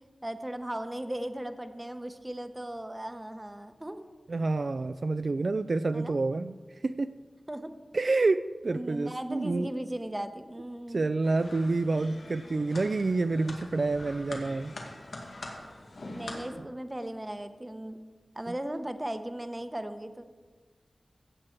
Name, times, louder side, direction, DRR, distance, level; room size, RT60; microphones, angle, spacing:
voice 1, 0.2-4.0 5.9-6.2 7.5-7.7 8.7-11.1 16.1-18.0 18.3-20.2, right 1 dB, 15° right, 9 dB, 0.8 m, -37 dB
voice 2, 4.3-7.1 7.9-9.7 10.9-14.7 18.5-18.6, right 3 dB, 55° right, 11 dB, 0.3 m, -28 dB
sound 1, 11.2-16.5, left 2 dB, 80° left, 2.0 m, -44 dB
16.0 x 7.6 x 4.5 m, 1.4 s
wide cardioid pair, 95°, 0 cm